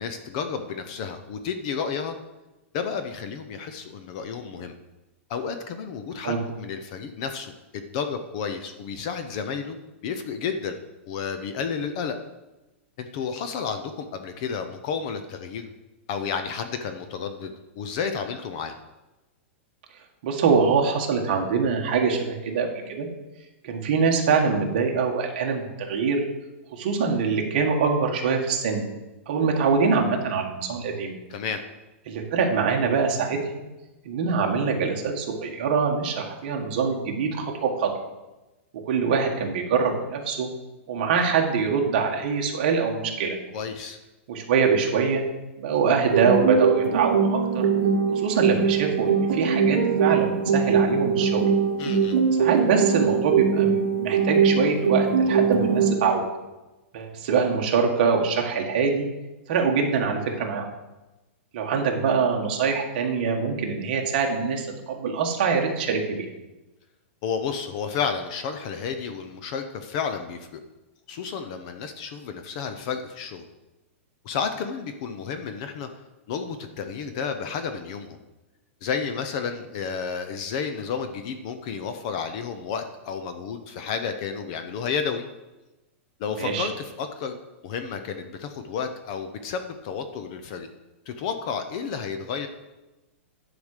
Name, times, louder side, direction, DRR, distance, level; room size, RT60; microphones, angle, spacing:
voice 1, 0.0-2.2 2.7-4.7 5.3-9.8 10.0-10.8 11.1-12.2 13.0-15.7 16.1-18.7 31.3-31.6 43.5-44.0 51.8-52.2 67.2-70.6 71.1-73.4 74.2-75.9 76.3-78.2 78.8-85.3 86.2-87.4 87.6-90.7 91.1-92.5, left 6 dB, 30° left, 8 dB, 0.6 m, -31 dB
voice 2, 20.2-23.1 23.6-26.2 26.7-28.8 29.3-31.1 32.1-33.6 34.0-37.9 38.9-40.5 40.9-43.4 44.3-45.2 45.6-47.7 48.1-51.4 52.4-56.2 56.9-59.1 59.5-60.7 61.5-66.3 86.3-86.7, right 5 dB, 40° right, 1 dB, 1.6 m, -24 dB
sound 1, 46.1-56.1, right 6 dB, 65° right, 1.1 m, -22 dB
10.5 x 4.9 x 6.6 m, 1.0 s
supercardioid pair, 180°, 7 cm